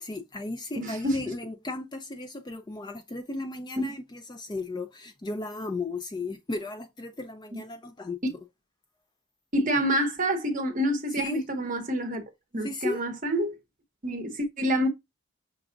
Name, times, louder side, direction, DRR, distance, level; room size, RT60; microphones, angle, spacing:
voice 1, 0.0-8.4 11.1-11.4 12.6-13.0, left 2 dB, 20° left, 0.4 m, -35 dB
voice 2, 0.8-1.2 9.5-12.2 12.5-13.5 14.0-14.9, equal, 40° right, 0.9 m, -27 dB
5.9 x 2.4 x 3.8 m
head